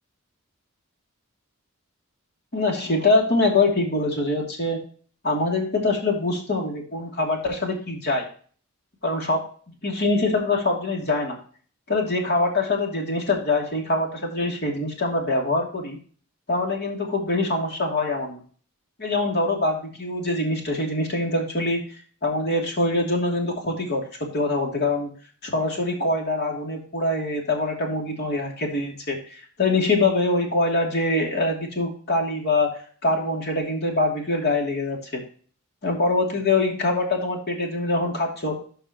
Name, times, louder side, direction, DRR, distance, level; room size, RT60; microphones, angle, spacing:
voice 1, 2.5-4.8 5.2-8.2 9.0-9.4 9.8-11.4 11.9-16.0 16.5-18.4 19.0-21.8 22.2-25.1 25.4-32.7 33.0-35.2 35.8-38.6, left 2 dB, 50° left, 0 dB, 2.8 m, -24 dB
13.0 x 5.3 x 3.0 m, 0.43 s
head